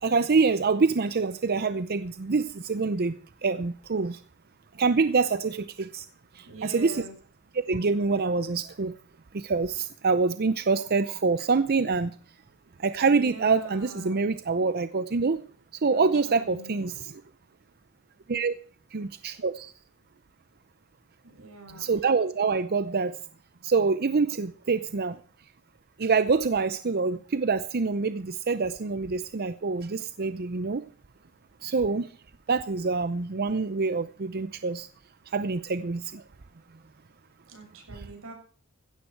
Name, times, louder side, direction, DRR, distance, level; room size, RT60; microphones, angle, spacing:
voice 1, 0.0-4.2 4.8-6.0 6.6-7.0 7.7-8.9 9.3-12.1 12.8-15.4 15.8-17.1 18.3-18.5 18.9-19.7 21.8-23.2 23.6-25.2 26.0-30.8 31.6-32.1 32.5-34.9 35.3-36.2, right 4 dB, 50° right, 12 dB, 0.6 m, -26 dB
voice 2, 6.4-7.1 13.0-14.2 15.9-16.7 21.3-21.9 37.5-38.3, right 2 dB, 90° right, 3 dB, 7.0 m, -44 dB
16.0 x 13.0 x 4.6 m, 0.43 s
head